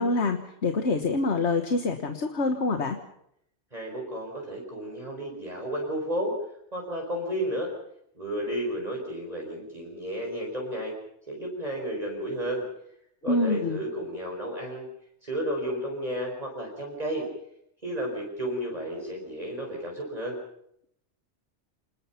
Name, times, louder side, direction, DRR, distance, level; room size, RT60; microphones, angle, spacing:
voice 1, 0.0-3.0 13.3-13.8, left 3 dB, 75° left, 6 dB, 1.7 m, -26 dB
voice 2, 3.7-6.3 6.7-7.7 8.1-10.9 11.3-12.6 13.2-14.9 15.2-17.3 17.8-20.4, equal, 35° right, -1 dB, 4.9 m, -32 dB
27.5 x 20.0 x 5.8 m, 0.75 s
omnidirectional pair, 1.2 m